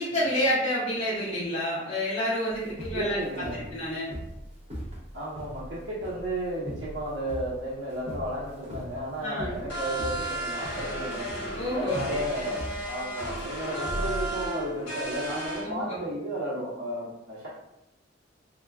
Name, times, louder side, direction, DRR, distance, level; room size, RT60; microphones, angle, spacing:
voice 1, 0.0-3.2 3.7-4.1 9.2-9.5 11.6-12.0 15.6-16.0, equal, 35° left, -10 dB, 0.6 m, -28 dB
sound 1, 2.5-14.7, equal, 30° right, 0.5 m, -39 dB
voice 2, 2.6-3.6 5.1-11.3 11.7-17.5, right 1 dB, 70° right, -9 dB, 0.7 m, -33 dB
sound 2, 9.7-15.6, right 1 dB, 60° left, 0.9 m, -34 dB
2.2 x 2.1 x 3.4 m, 0.89 s
head